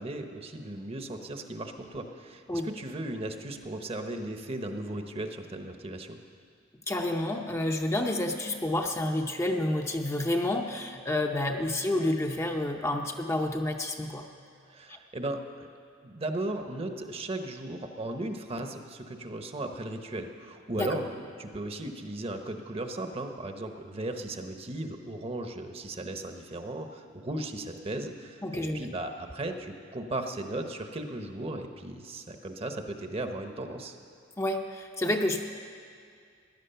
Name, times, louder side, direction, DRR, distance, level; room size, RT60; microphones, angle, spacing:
voice 1, 0.0-6.2 14.7-15.7 16.0-34.0, right 1 dB, 30° right, 6 dB, 0.9 m, -36 dB
voice 2, 6.9-14.3 14.9-15.0 20.8-20.9 28.4-28.9 34.4-35.5, left 1 dB, 15° left, 3 dB, 0.6 m, -29 dB
16.0 x 10.5 x 6.8 m, 2.2 s
head